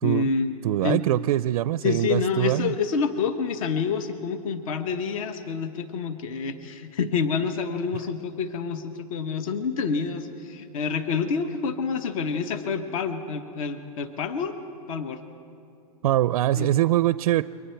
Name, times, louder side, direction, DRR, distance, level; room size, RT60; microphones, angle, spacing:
voice 1, 0.0-0.5 0.8-1.0 1.8-14.6 14.9-15.2 16.5-16.7, left 5 dB, 60° left, 9 dB, 1.2 m, -28 dB
voice 2, 0.6-2.7 16.0-17.4, right 14 dB, 65° right, 15 dB, 0.4 m, -23 dB
28.5 x 23.0 x 4.6 m, 2.7 s
supercardioid pair, 165°, 20 cm